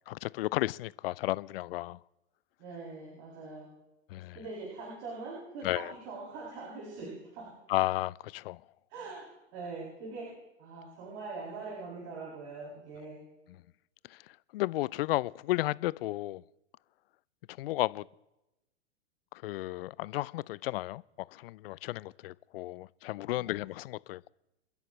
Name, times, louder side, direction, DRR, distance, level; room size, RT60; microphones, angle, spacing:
voice 1, 0.1-2.0 4.1-4.4 5.6-5.9 7.7-8.6 14.1-16.4 17.5-18.1 19.3-21.0 21.3-24.3, left 17 dB, 55° left, 0.5 m, -33 dB
voice 2, 2.6-3.7 4.3-7.5 8.9-10.3 10.6-13.2 23.3-23.5, right 3 dB, 50° right, 7.3 m, -42 dB
30.0 x 10.5 x 3.2 m
hypercardioid pair, 110°, 35 cm